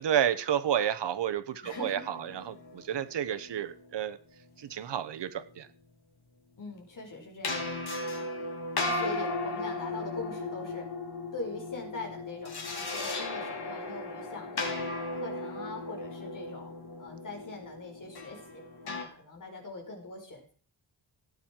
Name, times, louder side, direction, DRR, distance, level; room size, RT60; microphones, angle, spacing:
voice 1, 0.0-4.2 4.6-5.7, right 9 dB, 80° right, 12 dB, 1.2 m, -31 dB
voice 2, 1.6-2.1 6.6-7.6 8.8-10.9 11.3-16.7 17.0-20.5, left 3 dB, 50° left, 1 dB, 5.0 m, -42 dB
sound 1, 1.7-3.8 7.4-19.0, left 2 dB, 65° left, 3.3 m, -36 dB
17.5 x 9.2 x 4.6 m, 0.43 s
wide cardioid pair, 160°, 41 cm